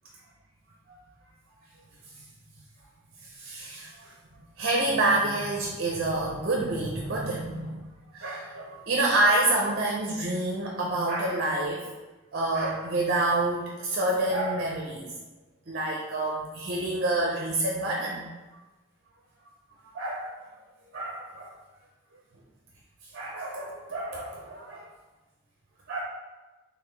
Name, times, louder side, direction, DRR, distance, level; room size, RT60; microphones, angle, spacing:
voice 1, 3.4-4.1 4.6-7.8 8.1-11.9 12.3-15.1 15.7-18.2 19.9-20.4 20.9-21.5 23.1-24.9 25.9-26.0, right 2 dB, 50° right, -1 dB, 0.5 m, -28 dB
4.0 x 3.1 x 3.1 m, 1.1 s
head